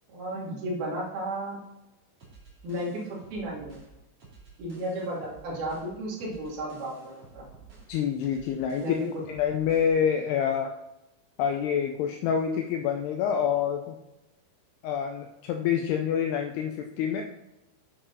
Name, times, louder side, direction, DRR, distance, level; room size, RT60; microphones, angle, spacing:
voice 1, 0.1-1.6 2.6-3.7 4.6-7.5 8.8-9.1, right 1 dB, 60° right, -4 dB, 4.2 m, -34 dB
sound 1, 2.2-10.0, right 4 dB, 40° right, 2.9 m, -52 dB
voice 2, 7.9-8.9 9.3-10.8 11.4-13.9 14.8-17.2, left 8 dB, 80° left, 4 dB, 2.4 m, -27 dB
9.4 x 8.1 x 4.0 m, 0.92 s
omnidirectional pair, 5.1 m